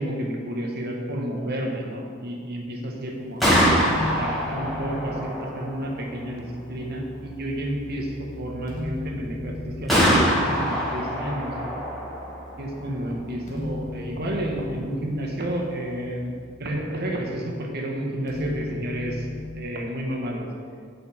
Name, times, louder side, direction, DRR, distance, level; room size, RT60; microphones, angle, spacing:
voice 1, 0.0-3.5 3.8-11.5 12.6-16.3 16.6-19.3 19.5-20.5, right 1 dB, 55° right, 0 dB, 1.6 m, -31 dB
Gunshot gunfire, 3.2-17.0, equal, ahead, 2.7 m, -27 dB
sound 1, 3.9-5.3 8.7-10.1 13.5-14.9 18.3-19.7, left 2 dB, 35° left, 2.1 m, -35 dB
9.7 x 8.9 x 4.5 m, 2.1 s
head